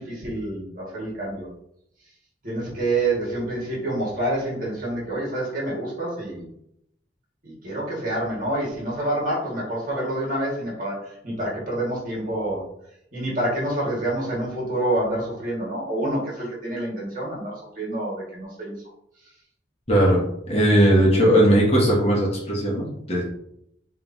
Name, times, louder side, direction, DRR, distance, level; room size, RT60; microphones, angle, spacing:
voice 1, 0.0-1.5 2.4-6.5 7.4-12.6 13.1-18.8, right 1 dB, 45° right, -5 dB, 1.8 m, -27 dB
voice 2, 19.9-23.2, right 1 dB, 35° left, -3 dB, 1.3 m, -18 dB
5.3 x 3.3 x 2.7 m, 0.74 s
head